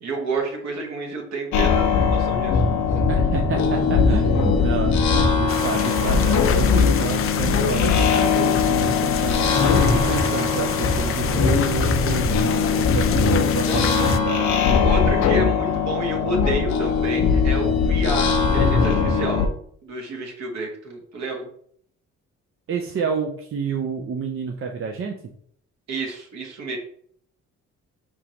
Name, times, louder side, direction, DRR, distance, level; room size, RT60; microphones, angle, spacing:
voice 1, 0.0-2.6 13.7-13.8 14.8-19.5 19.8-21.5 25.9-26.8, right 2 dB, 65° right, 1 dB, 1.5 m, -29 dB
sound 1, 1.5-19.5, left 5 dB, 75° left, 0.8 m, -20 dB
voice 2, 3.1-14.5 22.7-25.1, right 5 dB, 45° right, 2 dB, 0.6 m, -29 dB
sound 2, 5.5-14.2, left 9 dB, 45° left, 0.4 m, -29 dB
4.9 x 3.7 x 2.9 m, 0.62 s
cardioid pair, 90°, 30 cm